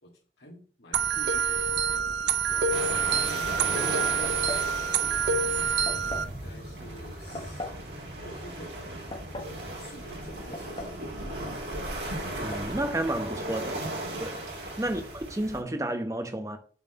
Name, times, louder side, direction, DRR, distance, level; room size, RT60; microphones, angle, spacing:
voice 1, 0.0-11.6, equal, 75° left, 2.3 m, -50 dB
sound 1, 0.9-6.2, right 6 dB, 90° right, 0.6 m, -27 dB
sound 2, 2.7-15.6, right 1 dB, 70° right, 3.0 m, -36 dB
sound 3, 4.2-4.7 5.9-6.3 7.4-7.8 8.9-9.6 10.5-11.1 11.3-11.4 12.3-12.7, left 1 dB, 30° left, 1.3 m, -39 dB
voice 2, 12.3-13.8 14.2-14.5 14.8-16.6, right 1 dB, 20° right, 0.9 m, -31 dB
7.0 x 4.2 x 6.7 m
head